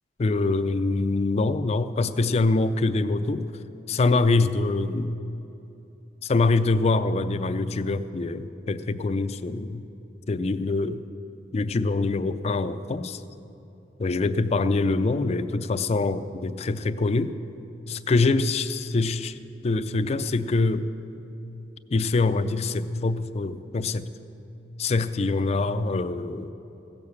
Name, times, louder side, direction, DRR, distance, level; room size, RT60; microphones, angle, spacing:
voice 1, 0.2-3.4 3.9-5.1 6.2-9.9 10.3-11.0 11.5-13.2 14.0-17.3 17.9-19.3 19.6-20.9 21.9-24.1 24.8-26.5, left 3 dB, 35° left, 11 dB, 0.4 m, -24 dB
16.0 x 6.5 x 7.1 m, 2.8 s
head